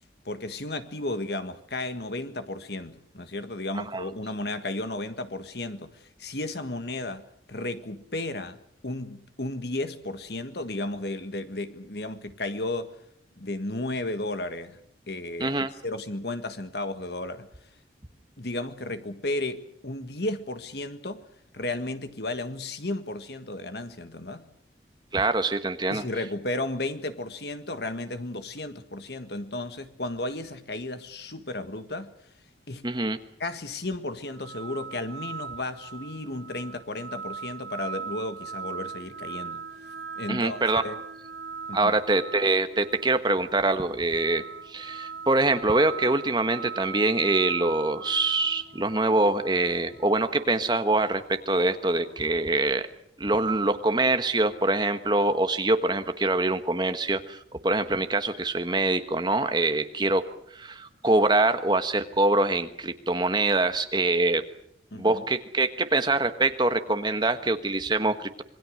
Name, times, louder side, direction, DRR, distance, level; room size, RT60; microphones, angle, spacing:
voice 1, 0.2-8.6 8.8-12.9 13.4-14.8 15.1-15.6 15.8-17.5 18.4-21.2 21.5-24.5 25.9-32.1 32.7-32.9 33.4-39.6 40.1-41.0 41.7-41.9 64.9-65.2, left 2 dB, 60° left, 1.7 m, -34 dB
voice 2, 15.4-15.7 25.1-26.0 32.8-33.2 40.3-40.8 41.7-52.9 53.2-64.4 64.9-68.4, right 2 dB, 25° right, 1.3 m, -24 dB
sound 1, 34.3-52.5, right 5 dB, 75° right, 5.1 m, -40 dB
26.5 x 21.0 x 6.5 m
head